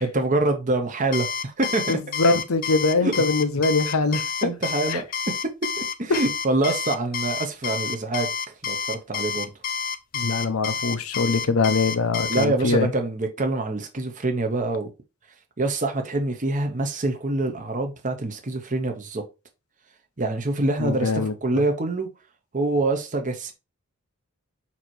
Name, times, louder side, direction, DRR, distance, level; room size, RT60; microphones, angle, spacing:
voice 1, 0.0-2.0 3.0-3.1 4.4-5.0 5.8-8.3 8.6-9.5 12.3-14.9 15.6-19.2 20.2-22.1 22.5-23.5, right 2 dB, 35° right, 1.0 m, -25 dB
Alarm, 1.1-12.5, left 6 dB, 40° left, 0.5 m, -29 dB
voice 2, 1.9-4.5 4.9-5.0 6.1-6.2 10.1-12.9 20.8-21.3, left 3 dB, 70° left, 0.9 m, -23 dB
7.3 x 3.0 x 4.5 m
head